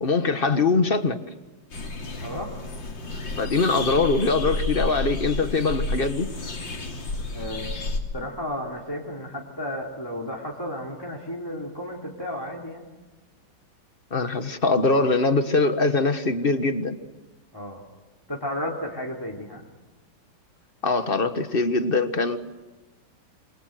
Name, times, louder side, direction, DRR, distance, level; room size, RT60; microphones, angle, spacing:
voice 1, 0.0-1.2 3.4-6.3 14.1-17.0 20.8-22.4, left 3 dB, 30° left, 9 dB, 1.5 m, -22 dB
sound 1, 1.7-8.0, left 3 dB, 70° left, 3.8 m, -31 dB
voice 2, 2.2-2.5 7.3-7.7 8.1-12.8 17.5-17.8 18.3-19.6, left 1 dB, 10° left, -2 dB, 3.1 m, -33 dB
28.0 x 24.5 x 7.9 m, 1.2 s
omnidirectional pair, 2.1 m